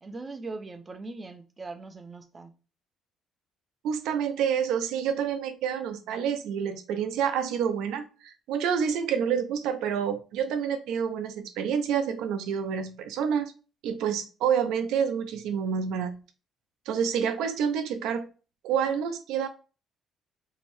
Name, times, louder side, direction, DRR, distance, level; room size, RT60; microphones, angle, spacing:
voice 1, 0.0-2.5, right 3 dB, 20° right, 0.3 m, -40 dB
voice 2, 3.8-13.5 13.8-16.1 16.9-18.3 18.6-19.5, right 7 dB, 85° right, 0.4 m, -28 dB
2.7 x 2.1 x 3.0 m
cardioid pair, 175°, 0 cm